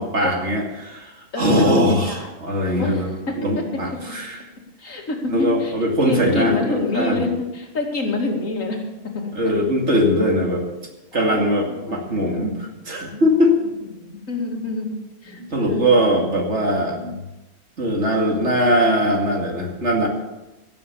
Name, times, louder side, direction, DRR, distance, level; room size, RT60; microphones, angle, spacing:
voice 1, 0.0-4.4 5.3-7.3 9.3-10.6 11.1-13.5 15.3-17.2 17.8-20.1, equal, 60° right, 1 dB, 2.6 m, -21 dB
voice 2, 1.3-2.3 2.8-3.6 4.8-5.7 6.0-8.8 9.1-9.3 11.1-13.3 14.0-16.2 18.3-18.6, left 2 dB, 90° left, 2 dB, 2.6 m, -27 dB
16.5 x 7.1 x 8.5 m, 1.0 s
omnidirectional pair, 1.3 m